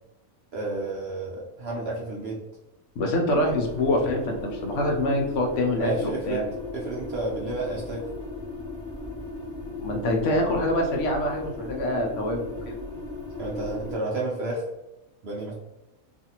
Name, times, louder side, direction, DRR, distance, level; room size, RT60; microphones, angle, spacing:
voice 1, 0.5-2.4 5.8-6.4 6.7-8.1 13.4-14.6 15.2-15.5, right 2 dB, 60° right, -3 dB, 0.7 m, -31 dB
voice 2, 3.0-6.4 9.8-12.8, left 1 dB, 65° left, 1 dB, 0.8 m, -25 dB
sound 1, 3.3-14.0, left 2 dB, 15° left, 1.1 m, -37 dB
2.5 x 2.4 x 2.8 m, 0.99 s
omnidirectional pair, 1.5 m